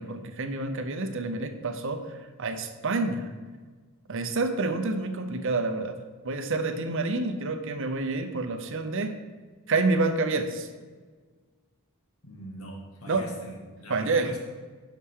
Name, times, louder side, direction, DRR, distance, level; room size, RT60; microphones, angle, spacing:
voice 1, 0.0-3.3 4.1-6.0 6.2-9.2 9.7-10.7 13.1-13.3 13.9-14.3, right 3 dB, 60° right, 8 dB, 0.7 m, -28 dB
voice 2, 12.2-14.4, equal, 70° left, -2 dB, 2.1 m, -42 dB
11.0 x 5.8 x 3.7 m, 1.4 s
head